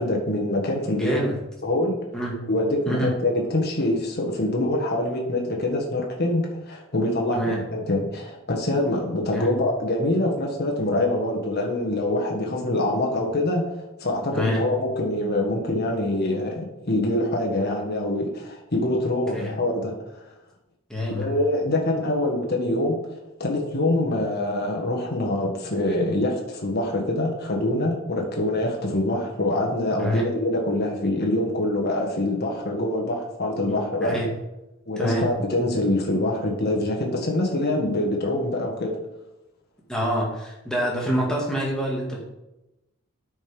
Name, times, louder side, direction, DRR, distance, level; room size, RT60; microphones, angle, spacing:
voice 1, 0.0-1.2 1.6-2.0 2.5-13.6 14.0-19.9 21.1-23.0 23.4-34.2 34.9-38.9, left 1 dB, 45° left, 0 dB, 1.6 m, -25 dB
voice 2, 1.0-1.4 2.1-2.3 2.9-3.1 7.3-7.6 9.3-9.5 14.3-14.6 19.3-19.5 20.9-21.3 30.0-30.3 33.7-34.3 35.0-35.2 39.9-42.2, equal, 5° left, -4 dB, 2.2 m, -26 dB
9.2 x 5.3 x 5.3 m, 0.95 s
head